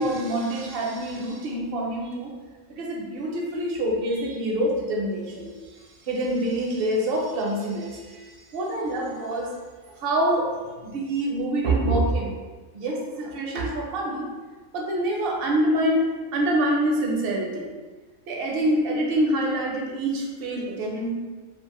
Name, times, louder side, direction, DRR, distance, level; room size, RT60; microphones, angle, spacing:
voice 1, 0.0-2.4 2.7-9.5 10.0-12.4 12.7-14.3 14.7-17.7 18.3-21.1, right 1 dB, 60° right, -1 dB, 0.6 m, -26 dB
2.5 x 2.3 x 2.9 m, 1.3 s
omnidirectional pair, 1.4 m